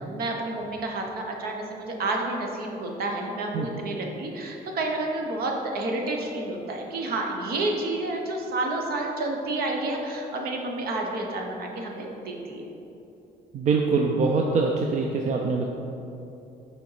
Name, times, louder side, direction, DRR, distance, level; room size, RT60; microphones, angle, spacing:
voice 1, 0.0-12.7, right 2 dB, 65° right, 1 dB, 1.1 m, -30 dB
voice 2, 13.5-15.7, right 4 dB, 45° right, 1 dB, 0.6 m, -24 dB
6.7 x 4.3 x 4.9 m, 2.8 s
cardioid pair, 110°, 17 cm